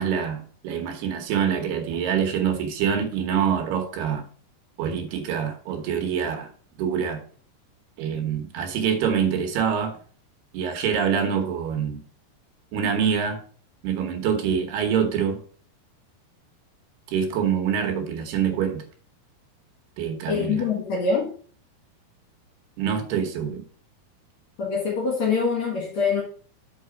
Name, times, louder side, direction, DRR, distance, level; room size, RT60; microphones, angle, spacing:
voice 1, 0.0-4.3 4.8-6.5 6.8-7.2 8.0-10.0 10.5-12.0 12.7-13.4 13.8-15.4 17.1-18.8 20.0-20.7 22.8-23.6, right 7 dB, 75° right, 3.0 m, -25 dB
voice 2, 20.3-21.3 24.6-26.2, left 5 dB, 55° left, 2.4 m, -24 dB
6.2 x 5.7 x 4.9 m
omnidirectional pair, 4.9 m